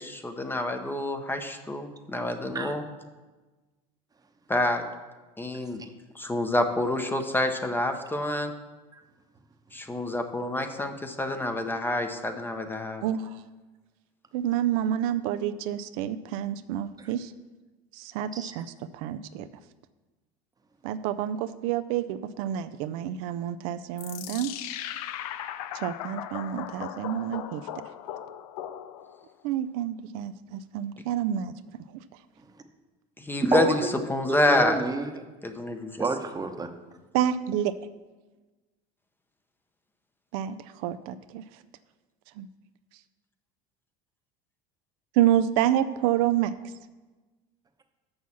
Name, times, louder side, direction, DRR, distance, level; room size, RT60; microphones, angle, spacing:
voice 1, 0.0-2.8 4.5-4.8 5.4-5.8 6.1-8.5 9.7-13.0 33.2-33.8 34.1-34.8 35.4-36.0, left 1 dB, 10° left, 6 dB, 0.8 m, -28 dB
voice 2, 13.0-13.4 14.3-17.3 17.9-18.7 18.9-19.5 20.8-24.5 25.7-27.7 29.4-31.5 31.9-32.0 37.1-37.7 40.3-41.4 42.4-42.5 45.1-46.5, right 11 dB, 75° right, 12 dB, 0.4 m, -28 dB
sound 1, 24.0-29.3, left 11 dB, 85° left, 0.5 m, -38 dB
voice 3, 33.4-33.8 34.3-35.2 36.0-36.7, right 3 dB, 20° right, 6 dB, 0.9 m, -29 dB
6.3 x 5.9 x 7.1 m, 1.2 s
supercardioid pair, 105°, 19 cm